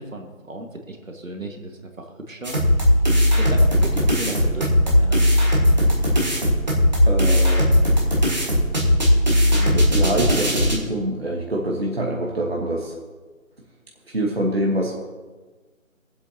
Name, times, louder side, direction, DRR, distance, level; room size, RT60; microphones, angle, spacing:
voice 1, 0.0-2.6 3.4-5.2, right 1 dB, 70° right, 3 dB, 1.7 m, -34 dB
sound 1, 2.4-10.7, equal, 30° right, 1.6 m, -18 dB
voice 2, 7.1-7.8 9.5-12.9 14.1-15.0, right 1 dB, 45° right, -1 dB, 1.2 m, -25 dB
22.0 x 8.0 x 2.8 m, 1.3 s
figure-of-eight pair, 175°, 41 cm